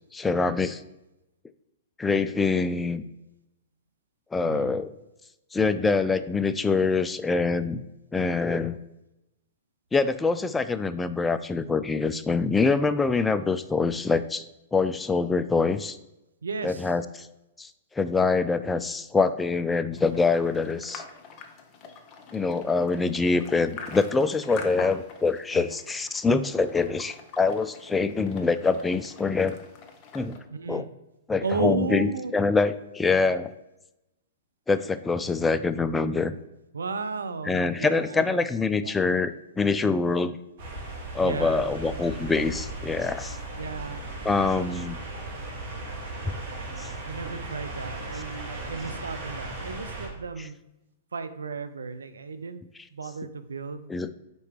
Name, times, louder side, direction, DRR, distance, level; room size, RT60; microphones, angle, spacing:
voice 1, 0.1-0.8 2.0-3.0 4.3-4.9 5.5-7.8 8.1-8.8 9.9-14.4 14.7-16.0 16.6-17.3 17.6-17.7 18.0-21.0 22.3-29.6 30.1-30.4 30.7-30.9 31.3-33.5 34.7-36.4 37.4-40.4 41.1-43.4 44.2-45.0 46.2-46.3 46.8-46.9 53.9-54.1, left 4 dB, 10° left, 12 dB, 0.4 m, -25 dB
voice 2, 4.4-4.8 8.5-8.6 16.4-16.9 25.5-25.6 30.5-30.9 31.4-32.3 36.7-38.3 38.8-39.0 41.2-41.6 43.6-44.7 47.0-50.6 51.1-52.6 52.9-53.9, right 4 dB, 85° right, 11 dB, 0.5 m, -34 dB
sound 1, 19.9-30.4, left 5 dB, 35° left, 0.9 m, -45 dB
sound 2, 40.6-50.1, right 2 dB, 50° right, 2.2 m, -37 dB
5.4 x 4.6 x 4.5 m, 0.92 s
hypercardioid pair, 115°, 0 cm